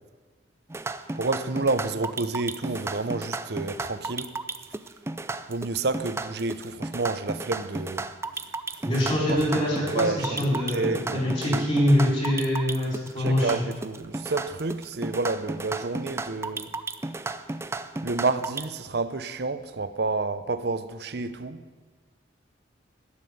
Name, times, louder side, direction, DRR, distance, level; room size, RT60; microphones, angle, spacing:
sound 1, 0.7-18.6, right 3 dB, 15° right, 0.4 m, -33 dB
voice 1, 1.2-4.3 4.7-4.8 5.5-8.1 8.3-11.7 13.2-16.7 18.0-21.6, right 3 dB, 55° right, 0.7 m, -30 dB
voice 2, 8.8-13.5, left 1 dB, 30° left, 4.6 m, -24 dB
12.5 x 9.8 x 6.8 m
head